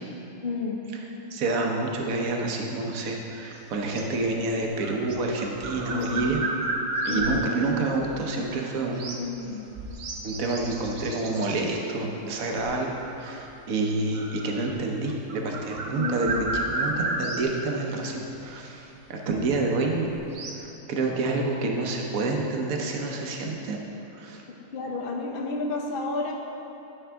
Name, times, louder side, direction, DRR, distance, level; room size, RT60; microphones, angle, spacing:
voice 1, 0.4-0.8 5.9-6.3 7.1-7.6 9.1-9.7 15.9-16.5 24.7-26.3, left 3 dB, 60° left, 0 dB, 0.6 m, -31 dB
voice 2, 1.3-6.4 7.0-9.1 10.2-16.3 16.7-20.1 20.6-23.8 24.1-24.4, right 3 dB, 55° right, 1 dB, 1.1 m, -28 dB
sound 1, 3.5-8.1 9.0-9.3 9.7-11.8 12.6-13.5 14.1-14.7 15.1-17.6 18.4-18.5 19.8-20.7, right 2 dB, 80° right, 0.5 m, -32 dB
11.0 x 5.6 x 3.4 m, 2.9 s
omnidirectional pair, 1.9 m